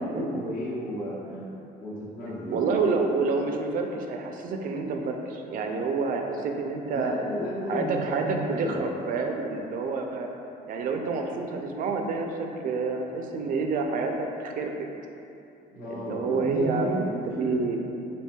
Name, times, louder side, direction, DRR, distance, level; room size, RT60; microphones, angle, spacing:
voice 1, 0.0-1.5 1.8-2.6 6.9-8.8 15.7-17.7, equal, 60° left, -7 dB, 1.0 m, -33 dB
voice 2, 2.5-7.1 7.7-10.3 10.7-14.7 15.9-17.8, right 4 dB, 55° right, 3 dB, 0.4 m, -28 dB
4.5 x 2.6 x 2.2 m, 2.7 s
cardioid pair, 110°, 17 cm